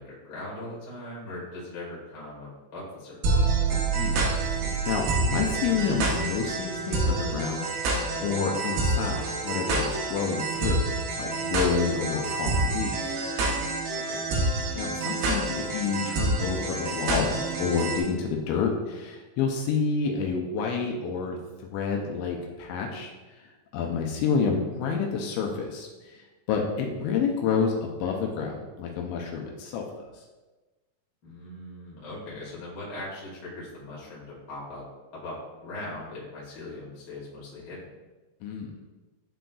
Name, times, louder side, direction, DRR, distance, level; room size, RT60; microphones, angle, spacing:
voice 1, 0.0-3.6 13.9-14.2 31.2-34.8 35.1-38.0, left 2 dB, 55° left, -7 dB, 1.1 m, -40 dB
sound 1, 3.2-18.0, right 3 dB, 70° right, 2.7 m, -27 dB
voice 2, 3.9-4.3 4.9-10.8 11.2-13.2 14.8-23.1 23.4-29.8 30.1-30.2 38.4-38.7, left 5 dB, 80° left, 1 dB, 2.8 m, -29 dB
11.0 x 3.8 x 2.3 m, 1.2 s
omnidirectional pair, 5.5 m